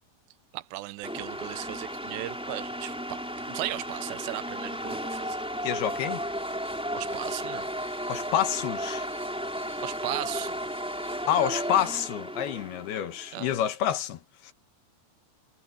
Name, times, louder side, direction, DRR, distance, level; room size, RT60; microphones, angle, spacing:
voice 1, 0.5-3.2 3.5-5.4 6.9-7.7 9.8-10.6 13.3-13.6, right 17 dB, 85° right, 2.8 m, -36 dB
sound 1, 1.0-13.3, equal, ahead, 2.9 m, -34 dB
voice 2, 5.6-6.2 8.1-9.1 11.3-14.2, left 10 dB, 70° left, 3.0 m, -28 dB
omnidirectional pair, 5.0 m